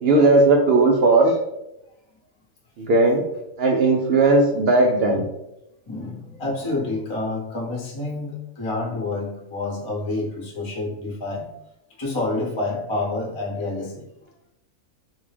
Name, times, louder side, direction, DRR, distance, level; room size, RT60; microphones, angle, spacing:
voice 1, 0.0-1.3 2.8-3.2 3.6-5.2, right 2 dB, 65° right, 1 dB, 0.6 m, -17 dB
voice 2, 5.9-11.4 12.0-14.0, left 2 dB, 25° left, -3 dB, 0.6 m, -28 dB
3.5 x 2.7 x 3.3 m, 0.86 s
omnidirectional pair, 1.4 m